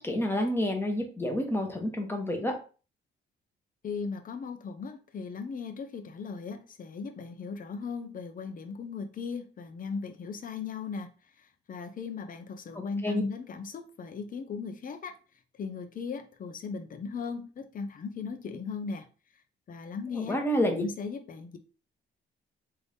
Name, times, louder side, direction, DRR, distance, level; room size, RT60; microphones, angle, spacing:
voice 1, 0.0-2.5 13.0-13.2 20.1-20.8, equal, 10° left, 1.1 m, -29 dB
voice 2, 3.8-11.1 11.4-15.1 15.6-19.1 19.7-21.6, left 5 dB, 45° left, 0.7 m, -37 dB
3.4 x 2.7 x 3.5 m
cardioid pair, 90°, 20 cm